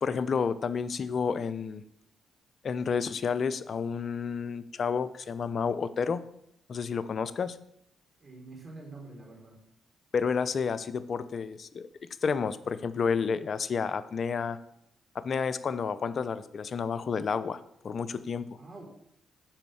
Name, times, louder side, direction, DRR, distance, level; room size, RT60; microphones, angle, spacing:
voice 1, 0.0-1.8 2.6-6.2 6.7-7.6 10.1-11.9 12.2-14.6 15.1-18.5, left 6 dB, 55° left, 14 dB, 0.6 m, -30 dB
voice 2, 8.2-9.6 18.6-18.9, right 3 dB, 40° right, 0 dB, 3.8 m, -46 dB
8.9 x 5.2 x 6.3 m, 0.74 s
supercardioid pair, 60°, 0 cm